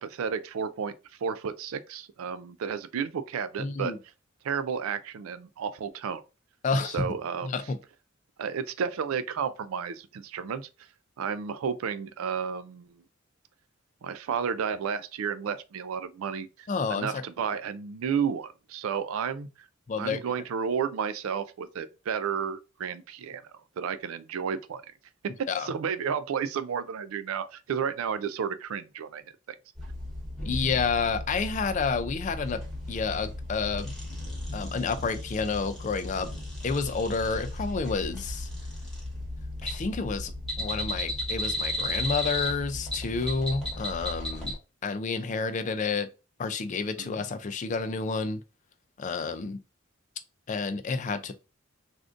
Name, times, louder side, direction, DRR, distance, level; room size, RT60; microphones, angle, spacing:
voice 1, 0.0-0.9 1.2-3.9 4.4-6.2 6.9-7.5 8.4-10.7 11.2-12.9 14.0-19.5 19.9-23.4 23.8-24.8 25.6-29.6 47.0-47.1, right 7 dB, 80° right, 0.4 m, -32 dB
voice 2, 3.6-4.0 6.6-7.1 7.4-7.8 16.7-17.2 19.9-20.2 25.5-25.7 30.4-32.6 32.9-33.9 34.5-36.3 36.6-38.5 39.6-44.5 44.8-46.1 46.4-48.4 49.0-49.6 50.5-51.3, left 4 dB, 35° left, 0.3 m, -30 dB
sound 1, 29.7-44.6, left 1 dB, ahead, 1.1 m, -35 dB
3.5 x 2.5 x 2.4 m
head